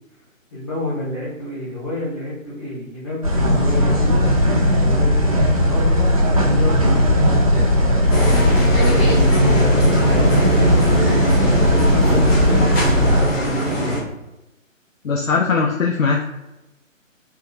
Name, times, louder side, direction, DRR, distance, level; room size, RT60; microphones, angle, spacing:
voice 1, 0.5-4.2 4.8-11.6 12.0-14.0, left 1 dB, 20° left, -10 dB, 0.7 m, -29 dB
sound 1, 3.2-13.3, equal, 30° right, 0.5 m, -16 dB
sound 2, 8.1-14.0, right 1 dB, 50° left, 1.3 m, -23 dB
voice 2, 15.0-16.2, left 4 dB, 80° left, 0 dB, 0.6 m, -19 dB
3.6 x 2.1 x 4.3 m, 0.99 s
figure-of-eight pair, 140°, 40 cm